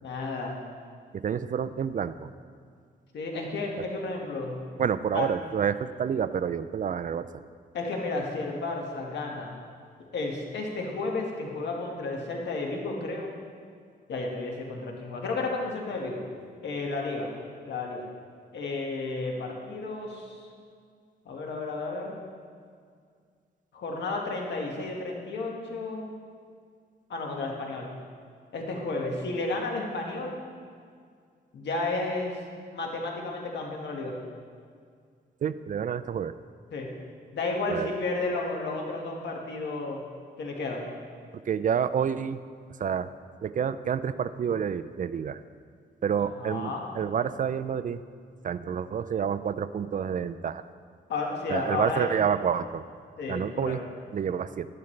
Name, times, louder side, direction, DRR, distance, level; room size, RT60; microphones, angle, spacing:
voice 1, 0.0-0.5 3.1-4.6 5.1-5.3 7.7-9.6 10.1-13.3 14.1-16.2 16.6-17.3 17.6-18.1 18.5-20.5 21.3-22.2 23.7-26.1 27.1-27.9 28.5-30.4 31.5-32.4 32.7-34.2 36.7-36.9 37.3-40.0 40.4-40.9 46.4-46.9 51.1-52.1 53.2-53.8, left 3 dB, 80° left, 0 dB, 1.8 m, -32 dB
voice 2, 1.1-2.3 4.8-7.3 35.4-36.3 37.7-37.9 41.5-42.4 42.8-43.1 43.4-45.4 46.0-48.0 48.4-50.6 51.5-52.8 53.3-53.8 54.1-54.7, right 7 dB, 50° right, 13 dB, 0.4 m, -28 dB
12.0 x 11.0 x 3.3 m, 2.1 s
cardioid pair, 95°, 18 cm